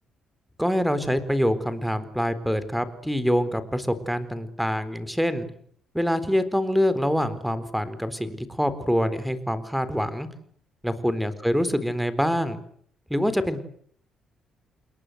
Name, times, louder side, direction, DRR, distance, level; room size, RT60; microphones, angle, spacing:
voice 1, 0.6-5.5 5.9-10.3 10.8-12.6 13.1-13.6, equal, ahead, 13 dB, 4.1 m, -25 dB
28.5 x 22.0 x 8.0 m, 0.63 s
cardioid pair, 90°, 0 cm